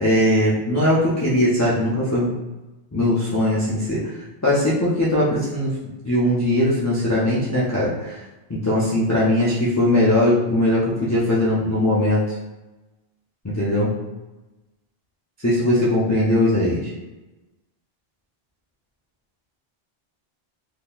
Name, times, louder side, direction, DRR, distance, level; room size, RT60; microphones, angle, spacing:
voice 1, 0.0-2.4 2.9-4.0 4.4-5.7 6.0-8.2 8.5-12.4 13.4-13.9 15.4-16.9, left 1 dB, 25° left, -8 dB, 0.4 m, -20 dB
3.6 x 2.8 x 2.3 m, 1.1 s
omnidirectional pair, 1.1 m